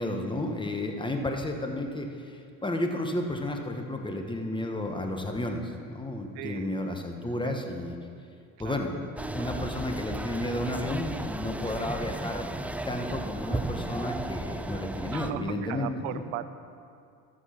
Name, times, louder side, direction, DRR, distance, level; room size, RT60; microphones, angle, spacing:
voice 1, 0.0-7.9 8.6-9.0 9.3-12.5 12.8-16.2, left 1 dB, 10° left, 3 dB, 1.3 m, -32 dB
voice 2, 6.3-7.0 7.3-7.6 8.6-8.8 11.6-11.7 15.1-16.4, right 13 dB, 70° right, 11 dB, 0.7 m, -38 dB
sound 1, 9.2-15.3, right 1 dB, 5° right, 0.4 m, -34 dB
12.5 x 6.4 x 5.9 m, 2.3 s
supercardioid pair, 80°, 41 cm